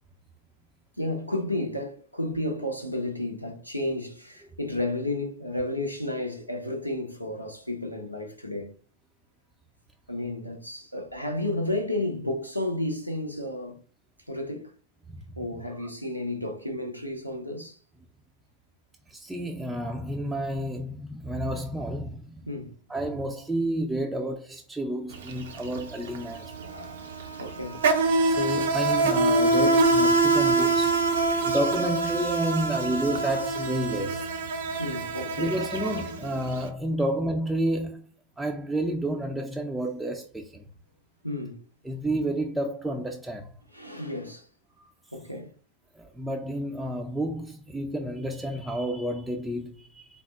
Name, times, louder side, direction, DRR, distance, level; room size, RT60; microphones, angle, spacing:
voice 1, 1.0-8.7 10.1-13.8 14.3-14.7 15.4-17.8 22.5-22.7 26.6-27.8 31.4-31.5 34.8-35.6 41.2-41.6 43.7-44.5 45.1-45.5, left 1 dB, 90° left, 0.7 m, -32 dB
voice 2, 19.1-22.5 22.9-26.5 28.2-31.0 31.4-34.3 35.4-38.0 38.4-40.7 41.8-43.5 46.0-50.2, right 1 dB, 5° right, 0.4 m, -30 dB
Insect, 25.1-25.3 25.6-36.6, right 2 dB, 65° right, 0.5 m, -24 dB
4.2 x 2.0 x 3.4 m
figure-of-eight pair, 90°, 0 cm